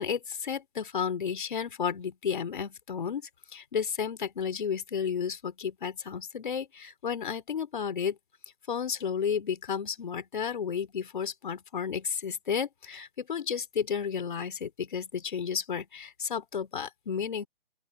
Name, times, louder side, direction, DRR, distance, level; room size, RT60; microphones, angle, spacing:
voice 1, 0.0-3.2 3.5-8.2 8.7-17.5, left 7 dB, 55° left, 3.0 m, -32 dB
open air
hypercardioid pair, 165°, 29 cm